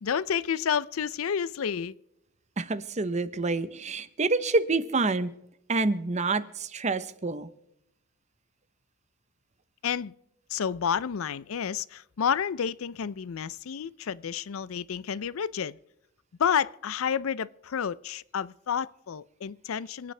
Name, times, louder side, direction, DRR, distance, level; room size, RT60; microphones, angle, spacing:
voice 1, 0.0-2.0 9.8-10.1 10.5-15.8 16.4-20.1, left 7 dB, 80° left, 0.5 m, -30 dB
voice 2, 2.6-5.3 5.7-7.5, right 3 dB, 35° right, 0.7 m, -27 dB
27.5 x 9.4 x 3.3 m
head